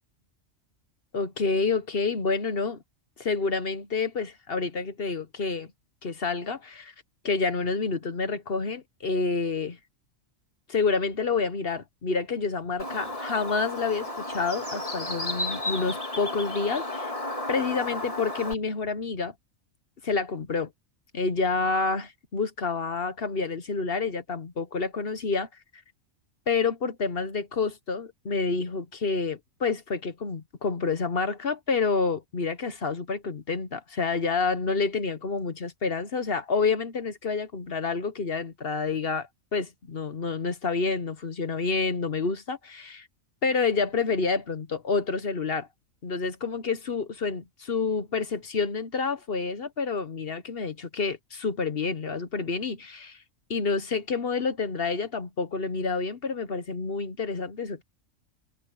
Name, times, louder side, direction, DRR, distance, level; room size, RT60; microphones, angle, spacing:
voice 1, 1.1-2.8 3.2-5.7 6.0-6.9 7.2-9.8 10.7-17.1 17.5-19.3 20.0-20.7 21.1-25.5 26.5-43.1 43.4-45.7 46.0-53.2 53.5-57.8, left 4 dB, 50° left, 1.2 m, -28 dB
Bird, 12.8-18.5, left 1 dB, 25° left, 3.1 m, -33 dB
omnidirectional pair, 1.4 m